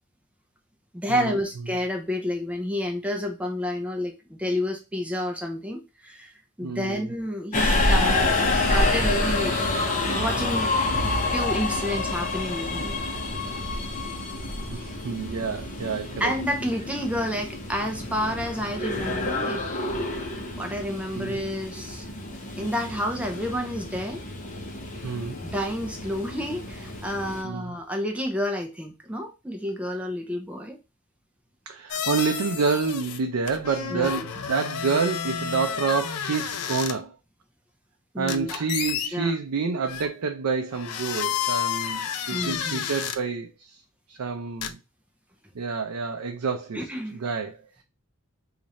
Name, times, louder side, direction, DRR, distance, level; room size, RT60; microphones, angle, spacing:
voice 1, 0.9-6.3 6.6-9.5 10.1-10.7 11.3-12.9 16.2-19.6 20.6-22.0 22.6-24.2 25.4-30.8 33.9-34.2 38.1-38.7 39.1-39.3 42.3-42.8 46.7-47.2, equal, 5° right, 0.5 m, -30 dB
voice 2, 6.6-7.1 14.7-16.3 21.1-21.4 25.0-25.4 27.4-27.8 31.7-37.2 38.2-43.8 44.1-44.8 45.5-46.8 47.2-47.8, right 5 dB, 70° right, 0.5 m, -28 dB
Subway metro underground, 7.5-27.4, left 2 dB, 35° left, 0.8 m, -28 dB
sound 1, 31.9-33.2 33.5-36.9 38.3-39.1 39.8-40.1 40.7-43.2 44.6-44.7, left 9 dB, 80° left, 0.4 m, -30 dB
3.1 x 2.4 x 4.0 m
head